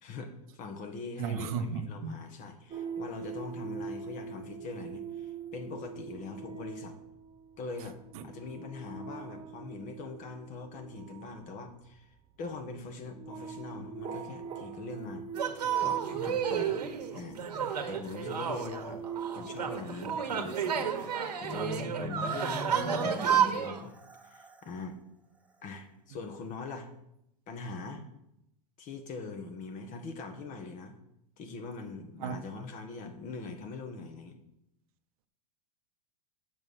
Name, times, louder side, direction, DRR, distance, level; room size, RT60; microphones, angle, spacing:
voice 1, 0.0-7.0 7.6-8.0 8.2-12.1 12.4-15.3 15.8-16.8 17.1-17.4 17.9-19.0 19.3-23.9 24.2-25.0 25.6-26.9 27.5-28.0 28.8-31.0 31.4-34.4, left 3 dB, 40° left, 6 dB, 1.6 m, -42 dB
voice 2, 1.2-2.2 8.1-8.2 22.0-22.1 32.2-32.3, right 6 dB, 60° right, 10 dB, 0.9 m, -35 dB
sound 1, 2.7-17.8 18.5-19.8, right 6 dB, 30° right, 1.3 m, -43 dB
sound 2, 15.3-23.8, right 7 dB, 85° right, 1.3 m, -31 dB
Marimba xylophone, 21.4-24.8, left 1 dB, 5° right, 1.1 m, -42 dB
7.8 x 5.7 x 6.2 m, 0.81 s
hypercardioid pair, 110°, 20 cm